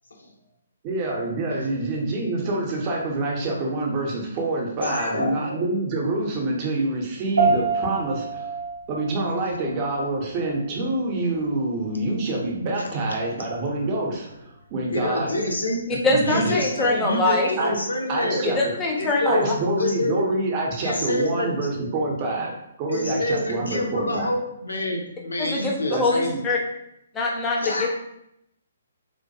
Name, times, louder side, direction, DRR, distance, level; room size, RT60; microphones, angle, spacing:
voice 1, 0.8-8.5 8.9-15.3 15.9-16.6 17.6-17.8 18.1-18.7 19.3-24.3 25.9-26.4, right 2 dB, 30° right, -1 dB, 0.6 m, -26 dB
voice 2, 4.8-5.4 14.9-15.9 16.3-18.5 19.0-20.3 20.8-21.7 22.9-26.3 27.6-27.9, left 1 dB, 75° left, 1 dB, 0.5 m, -27 dB
sound 1, 7.4-16.9, right 4 dB, 75° right, 0.4 m, -31 dB
voice 3, 16.0-17.5 18.4-19.5 25.4-26.6 27.1-27.9, left 2 dB, 15° left, -1 dB, 0.5 m, -23 dB
2.2 x 2.2 x 2.6 m, 0.78 s
figure-of-eight pair, 130°, 0 cm